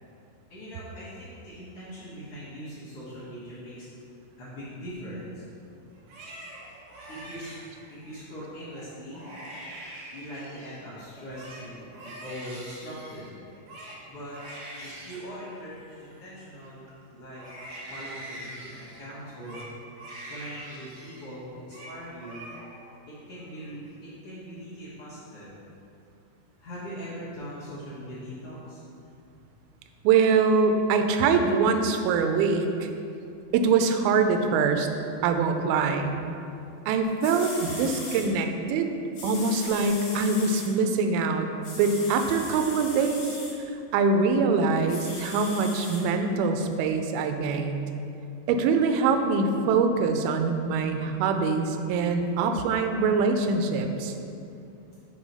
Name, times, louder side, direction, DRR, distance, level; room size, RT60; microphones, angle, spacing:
voice 1, 0.5-3.9 4.4-5.4 7.1-7.5 7.9-9.2 10.1-13.3 14.1-14.4 14.8-16.8 17.1-17.4 17.9-19.6 20.3-22.5 23.3-25.5 26.6-28.8, equal, 85° left, -11 dB, 1.2 m, -41 dB
Crying sobbing, 5.9-8.2 8.7-8.9 9.1-10.8 11.1-16.9 17.3-21.3 21.5-21.9 22.2-22.9 23.3-23.9, right 1 dB, 65° right, 2.0 m, -44 dB
voice 2, 30.0-32.9 33.5-34.9 35.2-36.1 36.9-38.9 39.2-41.5 41.8-43.2 43.9-47.8 48.5-54.1, right 4 dB, 85° right, 6 dB, 2.2 m, -24 dB
sound 1, 36.9-37.0 37.2-38.3 39.1-40.7 41.6-43.5 44.9-46.0 46.7-46.8, left 2 dB, 55° left, 2.1 m, -39 dB
5.3 x 4.7 x 5.4 m, 2.6 s
omnidirectional pair, 4.7 m